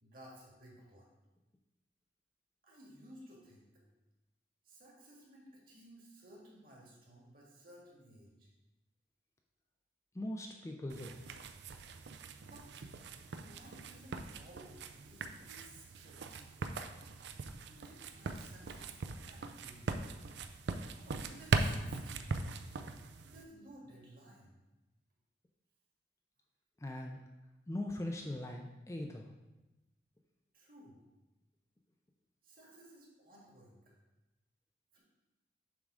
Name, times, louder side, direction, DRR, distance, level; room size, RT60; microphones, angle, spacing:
voice 1, 0.0-1.1 2.6-3.7 4.7-8.5 12.4-12.7 13.3-16.5 17.7-18.9 19.3-20.2 21.0-22.3 23.3-24.6 30.5-31.0 32.4-33.8 34.9-35.0, right 1 dB, 50° right, -3 dB, 1.8 m, -57 dB
voice 2, 10.1-11.2 22.3-22.4 26.8-27.2 27.7-29.3, left 1 dB, 15° left, 2 dB, 0.4 m, -41 dB
sound 1, 10.9-23.4, right 4 dB, 70° right, 0.4 m, -40 dB
7.2 x 3.6 x 4.9 m, 1.0 s
head